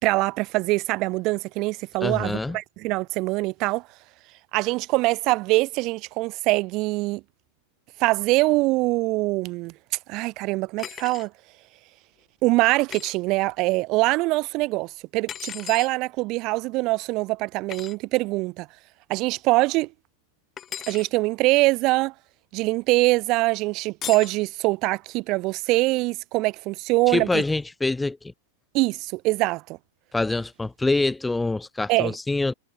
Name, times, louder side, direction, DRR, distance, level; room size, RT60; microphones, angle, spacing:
voice 1, 0.0-3.8 4.5-7.2 8.0-9.7 10.1-11.3 12.4-18.7 19.1-19.9 20.9-22.1 22.5-27.4 28.7-29.8 31.9-32.1, right 22 dB, 40° right, 1.6 m, -23 dB
voice 2, 2.0-2.6 27.1-28.3 30.1-32.5, left 2 dB, 10° left, 0.7 m, -25 dB
sound 1, 10.8-11.3 12.9-13.1 15.3-15.9 17.7-17.9 20.6-21.1 24.0-24.4, left 10 dB, 25° left, 2.2 m, -36 dB
figure-of-eight pair, 90°, 0 cm